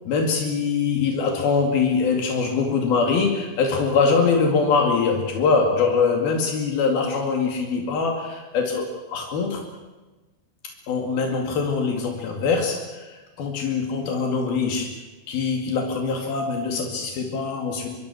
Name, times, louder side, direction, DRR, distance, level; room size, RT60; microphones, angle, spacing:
voice 1, 0.1-9.6 10.9-14.9 15.3-17.9, left 5 dB, 85° left, 2 dB, 4.3 m, -23 dB
25.5 x 22.5 x 6.3 m, 1.2 s
omnidirectional pair, 4.3 m